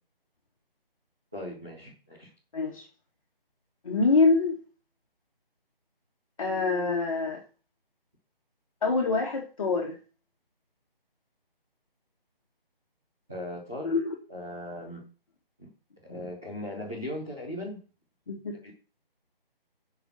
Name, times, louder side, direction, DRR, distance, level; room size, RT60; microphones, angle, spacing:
voice 1, 1.3-2.3 13.3-14.0 14.3-15.0 15.6-15.7 16.0-17.8 18.6-18.7, left 1 dB, 5° right, -9 dB, 0.6 m, -38 dB
voice 2, 2.5-2.9 3.8-4.6 6.4-7.4 8.8-10.0 13.8-14.1 18.3-18.7, left 3 dB, 35° left, -1 dB, 1.9 m, -25 dB
8.0 x 5.7 x 6.4 m, 0.36 s
figure-of-eight pair, 155°, 29 cm